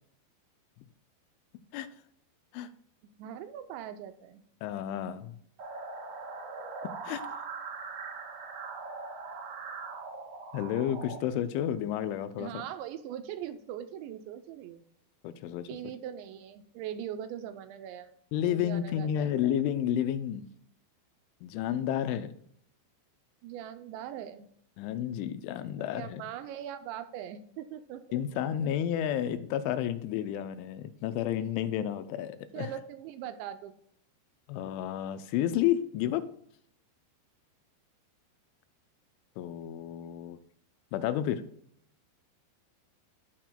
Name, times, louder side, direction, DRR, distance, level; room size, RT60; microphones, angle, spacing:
voice 1, 3.2-4.4 12.4-14.8 15.7-18.1 18.4-19.3 23.4-24.5 25.8-28.0 28.3-28.4 32.5-33.7, right 10 dB, 80° right, 9 dB, 2.8 m, -41 dB
voice 2, 4.6-5.4 6.8-7.4 10.5-12.5 15.2-15.7 18.3-20.5 21.4-22.4 24.8-26.2 28.1-32.7 34.5-36.3 39.4-40.4 40.9-41.4, left 10 dB, 85° left, 11 dB, 3.1 m, -31 dB
sound 1, 5.6-11.2, right 4 dB, 60° right, 2.9 m, -41 dB
16.0 x 6.0 x 2.3 m, 0.67 s
omnidirectional pair, 5.4 m